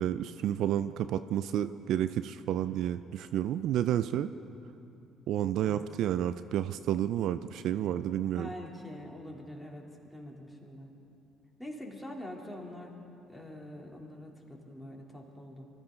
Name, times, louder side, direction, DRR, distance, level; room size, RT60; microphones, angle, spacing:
voice 1, 0.0-4.3 5.3-8.5, right 11 dB, 65° right, 13 dB, 0.4 m, -30 dB
voice 2, 8.2-10.9 11.6-12.9 13.3-15.7, left 1 dB, 5° left, -1 dB, 3.2 m, -45 dB
24.0 x 14.5 x 3.9 m, 2.7 s
hypercardioid pair, 55°, 0 cm